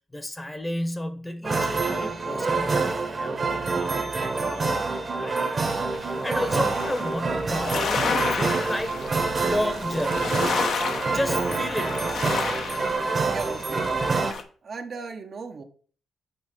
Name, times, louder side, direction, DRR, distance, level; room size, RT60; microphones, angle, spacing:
voice 1, 0.1-9.0 9.4-10.5 11.0-12.1, left 1 dB, 15° left, 9 dB, 1.0 m, -33 dB
sound 1, 1.4-14.3, right 3 dB, 35° right, 1.2 m, -27 dB
sound 2, 5.9-14.4, left 5 dB, 70° left, 0.9 m, -31 dB
voice 2, 13.3-13.9 14.6-15.6, right 4 dB, 55° right, 4 dB, 1.0 m, -36 dB
6.9 x 3.2 x 6.0 m, 0.43 s
cardioid pair, 80°, 0 cm